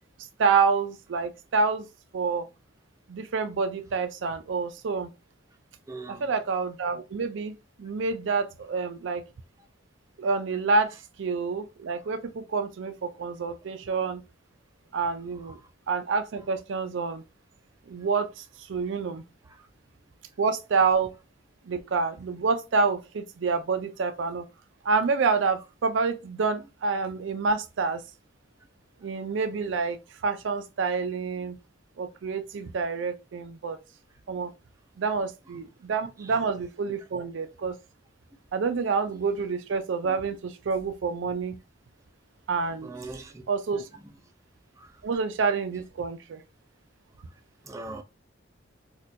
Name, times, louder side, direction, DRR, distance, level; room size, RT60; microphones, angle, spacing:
voice 1, 0.4-1.9 2.1-2.5 3.1-5.1 6.1-9.2 10.2-14.2 14.9-15.6 15.9-17.2 17.9-19.2 20.4-21.1 21.7-24.5 24.8-28.0 29.0-31.6 32.0-33.8 34.3-34.5 35.0-37.8 38.5-41.6 42.5-42.9 43.5-43.9 45.0-46.4, right 4 dB, 75° right, 0.4 m, -28 dB
voice 2, 5.9-6.3 15.4-15.5 19.5-19.7 36.2-36.4 39.1-39.2 42.8-43.4 44.8-45.0 47.6-48.0, right 2 dB, 15° right, 0.4 m, -41 dB
4.1 x 2.3 x 2.6 m
head